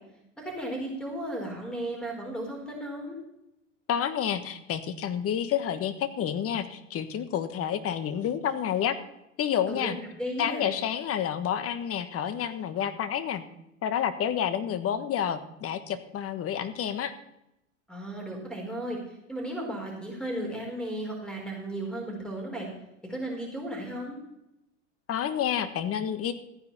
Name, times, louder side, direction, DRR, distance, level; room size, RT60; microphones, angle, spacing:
voice 1, 0.4-3.2 9.7-10.7 17.9-22.7 23.1-24.2, right 1 dB, ahead, 0 dB, 4.7 m, -35 dB
voice 2, 3.9-9.0 9.4-10.0 10.4-13.4 13.8-17.1 25.1-26.3, left 9 dB, 40° left, 11 dB, 1.4 m, -29 dB
15.0 x 9.8 x 4.3 m, 0.85 s
hypercardioid pair, 90°, 38 cm